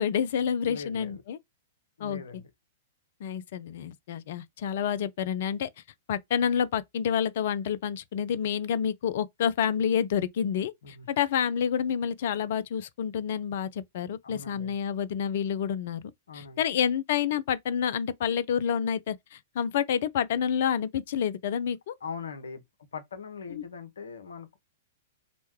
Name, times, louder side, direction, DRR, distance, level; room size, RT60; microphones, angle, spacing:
voice 1, 0.0-1.4 2.0-2.2 3.2-5.7 6.1-21.9 23.5-23.6, left 8 dB, 55° left, 0.4 m, -28 dB
voice 2, 0.6-1.2 2.0-2.5 10.8-11.1 14.2-14.7 16.3-16.6 22.0-22.6 22.9-24.6, left 5 dB, 70° left, 0.8 m, -41 dB
3.0 x 2.2 x 3.1 m
figure-of-eight pair, 105°, 0 cm